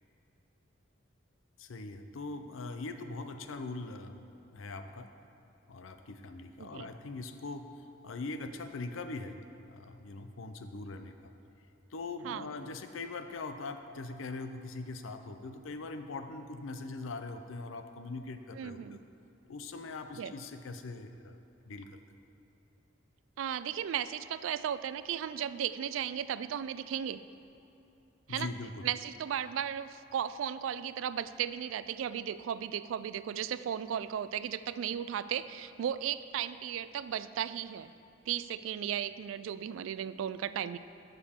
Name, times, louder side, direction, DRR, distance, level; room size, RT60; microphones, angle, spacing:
voice 1, 1.6-4.1 4.5-5.1 5.7-11.3 11.9-19.0 19.5-21.4 21.6-22.2 28.3-28.9, left 3 dB, 90° left, 8 dB, 0.5 m, -42 dB
voice 2, 6.6-6.9 12.2-12.5 18.6-19.0 20.2-20.3 23.4-27.2 28.3-28.5 28.8-37.9 38.3-40.8, right 9 dB, 85° right, 15 dB, 0.3 m, -35 dB
11.5 x 6.7 x 3.6 m, 2.8 s
head